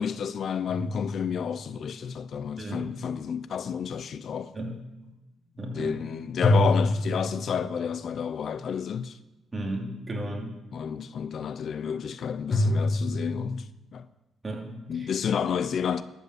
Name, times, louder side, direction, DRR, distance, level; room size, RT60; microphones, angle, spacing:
voice 1, 0.0-4.5 5.7-9.2 10.7-14.1 14.9-16.0, left 7 dB, 60° left, 0.5 m, -30 dB
sound 1, 0.7-1.9 6.4-8.0 12.5-13.6, left 1 dB, 30° left, 2.0 m, -26 dB
voice 2, 5.6-5.9 9.5-10.6 14.4-14.8, right 1 dB, 25° right, 2.9 m, -33 dB
12.0 x 5.5 x 7.9 m
cardioid pair, 90°, 0 cm